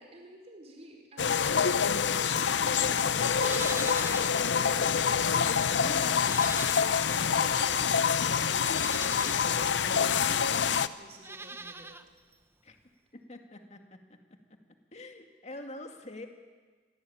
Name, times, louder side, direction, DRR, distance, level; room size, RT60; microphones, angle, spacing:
voice 1, 0.0-5.5 7.0-8.9 9.2-12.0, right 1 dB, 35° right, 1 dB, 4.9 m, -50 dB
sound 1, 1.2-10.9, left 7 dB, 70° left, 0.7 m, -26 dB
Livestock farm animals working animals, 3.3-4.4 4.8-4.9 6.1-7.2 8.0-8.1 8.6-9.4 11.1-12.0 12.3-12.4, right 3 dB, 15° right, 0.7 m, -41 dB
voice 2, 5.7-6.2 11.5-11.7 12.6-12.8 13.1-14.0 14.9-16.3, left 1 dB, 35° left, 5 dB, 2.2 m, -44 dB
26.0 x 17.0 x 8.8 m, 1.4 s
head